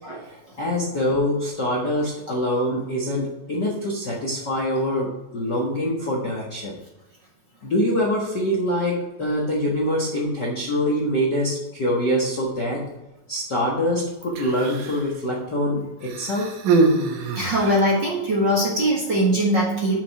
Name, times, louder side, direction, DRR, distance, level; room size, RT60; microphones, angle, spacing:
voice 1, 0.2-6.7 7.6-12.8 13.3-16.6, equal, 50° left, -3 dB, 1.3 m, -24 dB
Human voice, 14.2-15.1 16.0-18.0 18.9-19.0, right 3 dB, 70° right, 2.3 m, -24 dB
voice 2, 17.3-20.0, equal, 40° right, -4 dB, 1.9 m, -21 dB
7.5 x 6.8 x 4.8 m, 0.98 s
omnidirectional pair, 4.1 m